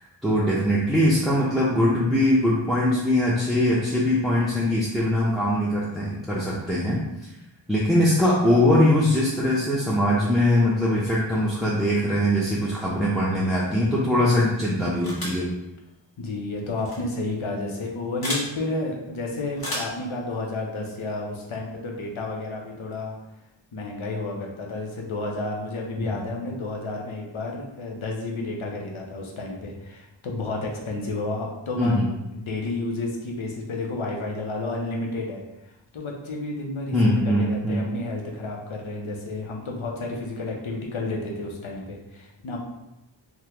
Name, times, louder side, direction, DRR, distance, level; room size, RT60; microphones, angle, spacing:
voice 1, 0.2-7.0 7.7-15.5 26.0-26.2 31.8-32.1 36.9-37.9, left 1 dB, ahead, -7 dB, 0.5 m, -22 dB
sound 1, 15.0-15.5 16.8-17.0 18.2-18.5 19.6-20.0, left 1 dB, 50° left, 1.1 m, -31 dB
voice 2, 16.2-23.2 23.7-35.4 35.9-37.0 37.2-42.6, left 2 dB, 85° left, 0 dB, 0.7 m, -31 dB
3.5 x 2.1 x 2.9 m, 0.92 s
wide cardioid pair, 60°, 47 cm